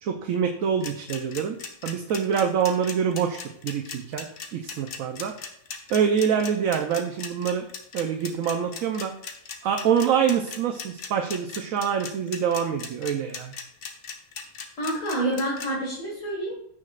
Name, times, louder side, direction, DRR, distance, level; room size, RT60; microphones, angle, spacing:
voice 1, 0.0-1.6 1.8-4.3 4.5-5.4 5.9-7.6 7.9-9.1 9.6-13.5, right 7 dB, 70° right, 4 dB, 1.1 m, -25 dB
sound 1, 0.8-15.7, left 6 dB, 85° left, 1.6 m, -37 dB
voice 2, 14.8-16.5, right 1 dB, 60° left, -4 dB, 2.2 m, -28 dB
15.0 x 6.2 x 2.4 m, 0.73 s
omnidirectional pair, 1.6 m